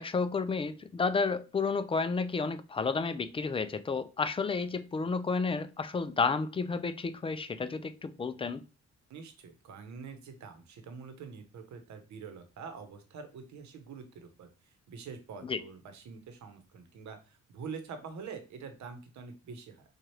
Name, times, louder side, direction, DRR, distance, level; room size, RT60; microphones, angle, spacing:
voice 1, 0.0-8.6 15.4-15.6, left 4 dB, 20° left, 0.4 m, -31 dB
voice 2, 9.1-14.5 14.9-19.8, right 5 dB, 65° right, 0.9 m, -45 dB
4.4 x 2.4 x 3.2 m
cardioid pair, 90°, 30 cm